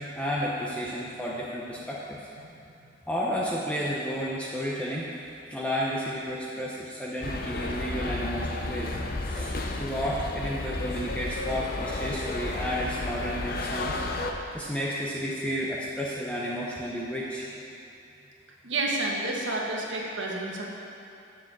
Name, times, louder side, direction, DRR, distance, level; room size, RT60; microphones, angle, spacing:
voice 1, 0.0-2.2 3.1-5.1 5.5-8.9 9.2-14.0 14.5-17.5, equal, 5° left, -6 dB, 0.7 m, -32 dB
sound 1, 7.2-14.3, left 2 dB, 50° left, 0.6 m, -32 dB
voice 2, 18.6-20.7, right 2 dB, 80° right, -2 dB, 1.4 m, -30 dB
7.6 x 6.2 x 7.4 m, 2.7 s
head